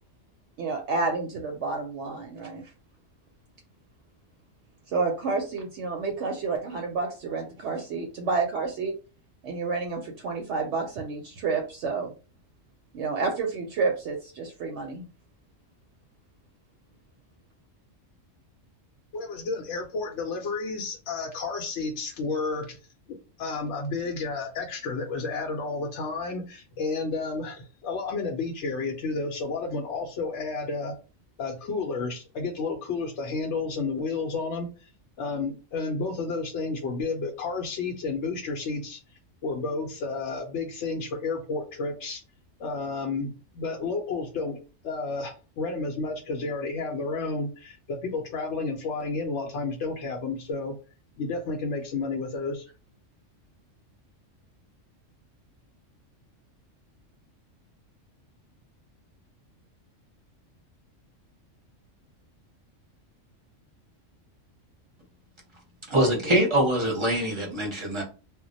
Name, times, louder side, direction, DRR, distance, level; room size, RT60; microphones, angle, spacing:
voice 1, 0.6-2.6 4.9-8.9 9.4-12.1 12.9-15.0, right 4 dB, 70° right, 0.8 m, -29 dB
voice 2, 19.1-22.8 23.1-30.9 31.4-34.9 35.2-39.0 39.4-42.2 42.6-44.6 44.8-50.7 51.2-52.6, left 3 dB, 70° left, 0.8 m, -31 dB
voice 3, 65.9-68.0, right 1 dB, 25° right, 0.7 m, -24 dB
2.2 x 2.1 x 3.8 m
omnidirectional pair, 1.3 m